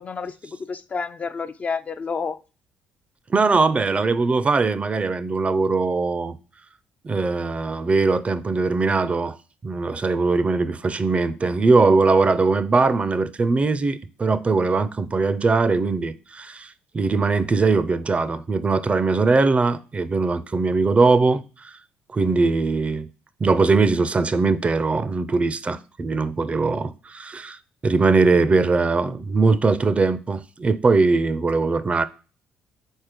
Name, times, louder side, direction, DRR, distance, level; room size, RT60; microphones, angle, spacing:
voice 1, 0.0-2.4, left 5 dB, 35° left, 0.4 m, -30 dB
voice 2, 3.3-6.4 7.0-9.4 9.6-21.7 22.1-23.1 23.4-27.6 27.8-32.1, right 3 dB, 30° right, 0.5 m, -21 dB
4.5 x 4.2 x 4.9 m
supercardioid pair, 65°, 4 cm